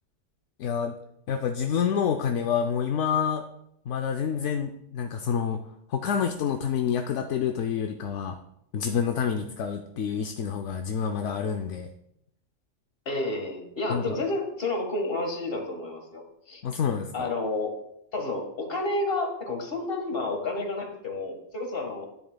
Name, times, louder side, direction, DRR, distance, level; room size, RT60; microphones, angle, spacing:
voice 1, 0.6-1.0 1.3-3.4 3.9-5.6 5.9-8.4 8.7-11.9 13.9-14.2 16.6-17.3, left 7 dB, 75° left, 6 dB, 0.9 m, -28 dB
voice 2, 13.1-16.6 17.1-17.7 18.1-22.1, left 2 dB, 50° left, 2 dB, 1.8 m, -30 dB
10.5 x 9.9 x 2.2 m, 0.79 s
omnidirectional pair, 1.3 m